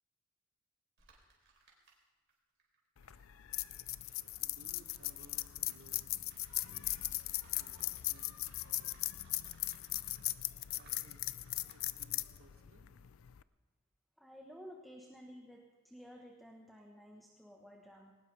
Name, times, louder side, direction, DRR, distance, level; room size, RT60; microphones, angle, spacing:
sound 1, 1.0-2.3 2.6-11.8, right 3 dB, 55° right, 3.8 m, -66 dB
sound 2, 3.0-13.4, left 17 dB, 75° left, 0.5 m, -39 dB
voice 1, 4.4-6.2 6.5-9.1 10.0-10.3 10.7-12.9, right 2 dB, 85° right, 0 dB, 2.8 m, -63 dB
voice 2, 14.2-18.1, equal, ahead, 0 dB, 1.2 m, -53 dB
20.5 x 19.0 x 3.4 m, 1.3 s
head